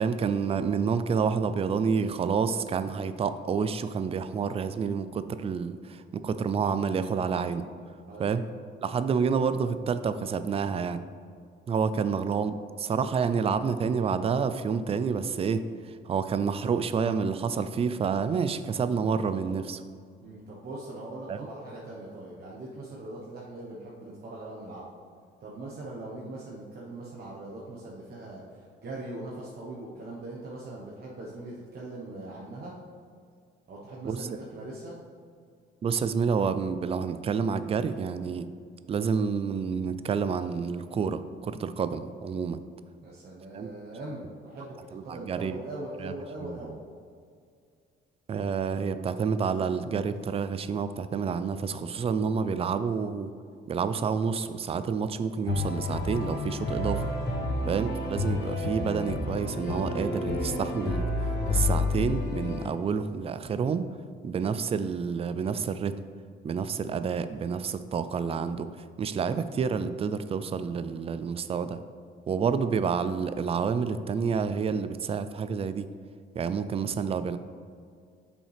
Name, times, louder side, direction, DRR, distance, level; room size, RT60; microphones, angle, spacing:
voice 1, 0.0-7.7 8.2-8.4 8.8-11.0 11.7-19.8 21.3-21.5 34.0-34.3 35.8-38.5 38.9-42.6 43.5-43.7 44.9-45.6 46.0-46.8 48.3-53.3 53.7-57.1 57.7-61.1 61.5-63.9 64.2-66.0 66.4-71.8 72.3-75.9 76.4-77.4, right 6 dB, 30° right, 12 dB, 0.3 m, -29 dB
voice 2, 20.2-24.9 25.4-28.4 28.8-32.7 33.7-35.0 43.0-46.7 57.4-57.7, right 2 dB, 50° right, -5 dB, 1.1 m, -41 dB
Loop with strings piano harp and bass, 55.5-62.7, left 2 dB, 60° left, 1.2 m, -30 dB
7.0 x 5.5 x 3.4 m, 2.2 s
cardioid pair, 90°, 20 cm